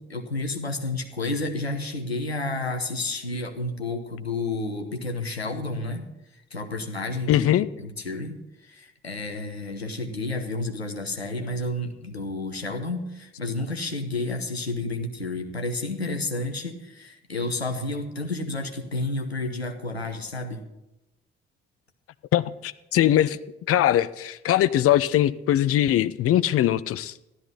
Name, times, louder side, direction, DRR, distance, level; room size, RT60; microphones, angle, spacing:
voice 1, 0.0-7.5 7.8-20.6, left 2 dB, 90° left, 5 dB, 0.9 m, -31 dB
voice 2, 7.3-7.7 22.3-23.4 23.7-27.1, left 12 dB, 45° left, 14 dB, 0.6 m, -21 dB
14.5 x 12.5 x 4.1 m, 0.93 s
figure-of-eight pair, 40°, 31 cm